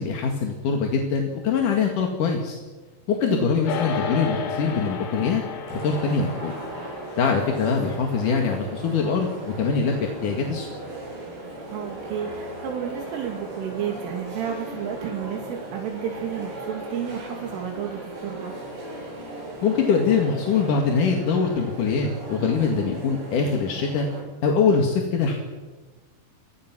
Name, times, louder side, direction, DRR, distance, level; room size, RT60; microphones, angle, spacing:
voice 1, 0.0-2.6 3.1-5.4 5.7-6.5 7.1-10.7 19.6-24.1 24.4-25.4, left 5 dB, 50° left, 2 dB, 2.8 m, -23 dB
sound 1, 3.7-13.2, left 6 dB, 75° left, 4.5 m, -36 dB
sound 2, 5.7-24.2, right 1 dB, 55° right, 9.3 m, -37 dB
voice 2, 11.7-18.5, right 8 dB, 75° right, 2 dB, 4.8 m, -31 dB
29.5 x 24.5 x 6.2 m, 1.3 s
omnidirectional pair, 5.9 m